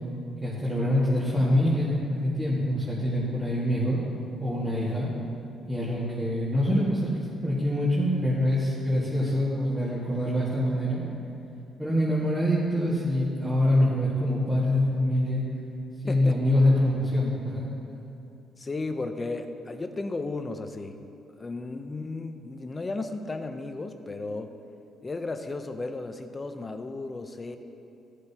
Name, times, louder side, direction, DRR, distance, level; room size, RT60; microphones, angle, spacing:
voice 1, 0.4-4.0 4.4-5.1 5.6-11.2 11.8-15.4 16.0-17.7, left 1 dB, 15° right, -9 dB, 1.9 m, -25 dB
voice 2, 16.1-16.6 18.6-21.0 21.3-24.5 25.0-27.6, left 3 dB, 25° left, 7 dB, 0.7 m, -34 dB
14.5 x 7.7 x 2.9 m, 2.7 s
cardioid pair, 90°, 0 cm